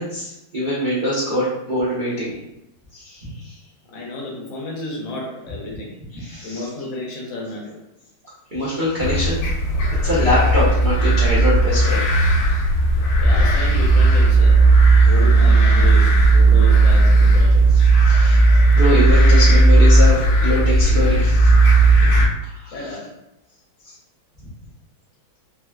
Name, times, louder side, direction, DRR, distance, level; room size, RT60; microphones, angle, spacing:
voice 1, 0.0-2.4 2.9-3.5 6.1-6.7 8.5-9.4 10.0-12.2 15.0-15.1 18.0-21.5 22.4-23.0 23.8-23.9 24.4-24.5, equal, 55° right, -11 dB, 0.5 m, -23 dB
voice 2, 3.9-5.9 6.2-7.8 13.2-14.6 15.1-17.9 22.0-22.3 22.7-23.1, left 2 dB, 75° left, -3 dB, 1.5 m, -31 dB
sound 1, 9.0-22.3, right 2 dB, 90° left, 1.4 m, -14 dB
4.1 x 2.1 x 2.2 m, 0.88 s
omnidirectional pair, 2.2 m